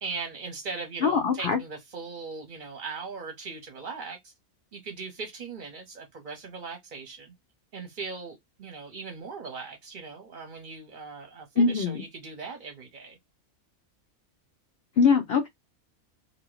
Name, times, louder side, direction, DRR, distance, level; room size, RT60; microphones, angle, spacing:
voice 1, 0.0-4.3 4.7-7.3 7.7-13.2, right 4 dB, 45° right, 0.7 m, -39 dB
voice 2, 1.0-1.6 11.6-12.0 15.0-15.5, left 5 dB, 55° left, 0.7 m, -22 dB
2.7 x 2.6 x 3.0 m
omnidirectional pair, 1.5 m